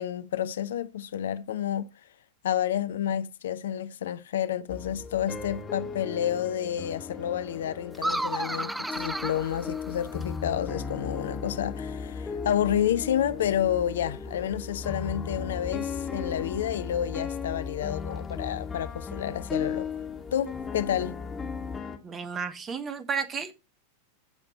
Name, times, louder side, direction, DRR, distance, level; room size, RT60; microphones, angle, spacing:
voice 1, 0.0-2.1 2.4-19.9 20.3-21.1, left 10 dB, 60° left, 0.7 m, -30 dB
sound 1, 4.7-22.0, left 5 dB, 15° left, 2.1 m, -36 dB
sound 2, 7.9-10.4, right 1 dB, 5° right, 0.5 m, -33 dB
voice 2, 22.0-23.5, right 6 dB, 25° right, 1.5 m, -32 dB
15.0 x 6.0 x 4.1 m
figure-of-eight pair, 90°, 0 cm